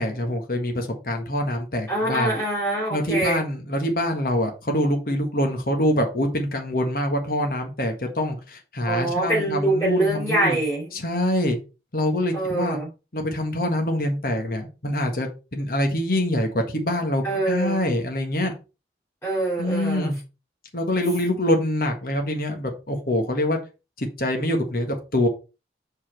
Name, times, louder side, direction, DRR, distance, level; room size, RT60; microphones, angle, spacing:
voice 1, 0.0-2.4 2.9-10.6 10.9-11.6 11.9-12.8 13.1-18.5 19.6-20.2 20.7-23.6 24.0-25.3, left 1 dB, 55° left, 3 dB, 1.5 m, -25 dB
voice 2, 1.9-3.4 8.8-10.9 12.3-12.9 17.2-17.8 19.2-20.1, right 1 dB, 15° left, -5 dB, 3.8 m, -24 dB
5.6 x 5.0 x 4.6 m, 0.30 s
head